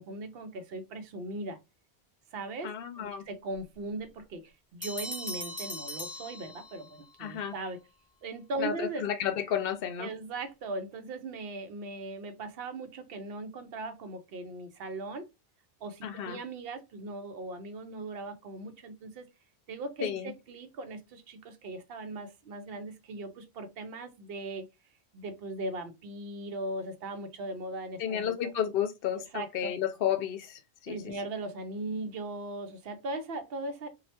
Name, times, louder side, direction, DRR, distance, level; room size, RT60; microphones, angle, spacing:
voice 1, 0.0-1.6 2.3-7.8 8.2-9.1 10.0-15.3 15.8-19.3 19.7-24.7 25.1-28.5 29.2-29.8 30.9-33.9, right 2 dB, 70° right, 0.8 m, -39 dB
voice 2, 2.6-3.2 7.2-7.5 8.6-10.1 16.0-16.4 20.0-20.3 28.0-31.1, left 9 dB, 65° left, 0.7 m, -32 dB
Bell, 4.8-7.1, left 1 dB, 10° left, 0.9 m, -39 dB
3.1 x 2.3 x 2.7 m
omnidirectional pair, 1.1 m